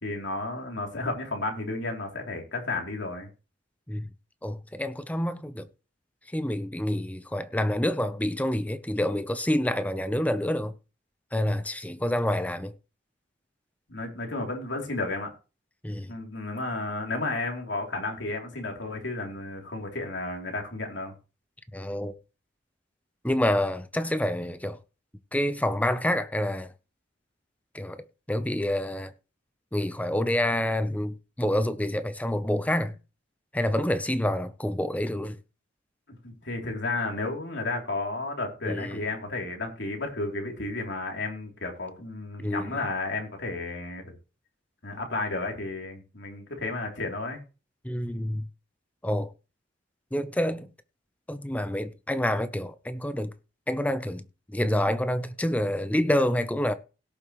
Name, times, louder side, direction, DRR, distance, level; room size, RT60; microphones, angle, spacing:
voice 1, 0.0-3.3 13.9-15.3 16.1-21.1 36.2-44.1 44.8-47.4, left 2 dB, 70° left, 3.2 m, -32 dB
voice 2, 4.4-5.7 6.3-10.7 11.3-12.7 15.8-16.1 21.7-22.1 23.2-24.8 25.3-26.7 27.7-29.1 29.7-33.0 33.5-35.4 38.7-39.0 42.4-42.8 47.8-48.5 49.0-49.3 50.1-50.7 51.3-53.3 53.7-54.2 54.5-56.7, left 1 dB, 10° left, 0.7 m, -27 dB
17.5 x 7.2 x 3.2 m
head